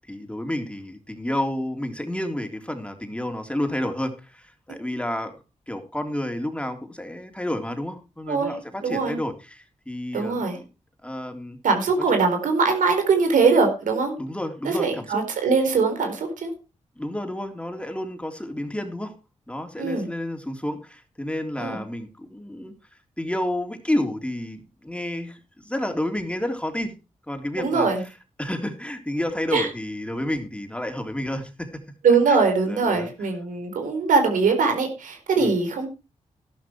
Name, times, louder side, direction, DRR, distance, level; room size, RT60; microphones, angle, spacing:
voice 1, 0.1-5.3 5.7-10.7 11.0-11.6 14.2-15.2 17.0-19.1 19.5-22.7 23.2-26.9 27.3-27.9 28.4-31.8 32.3-33.1 35.4-35.5, left 1 dB, 10° left, 5 dB, 3.4 m, -30 dB
voice 2, 8.8-9.2 10.1-10.6 11.6-14.1 14.6-16.5 19.8-20.1 21.6-21.8 27.6-28.0 29.5-29.7 32.0-35.9, right 4 dB, 85° right, 5 dB, 4.4 m, -22 dB
12.5 x 11.5 x 4.6 m, 0.31 s
cardioid pair, 50°, 13 cm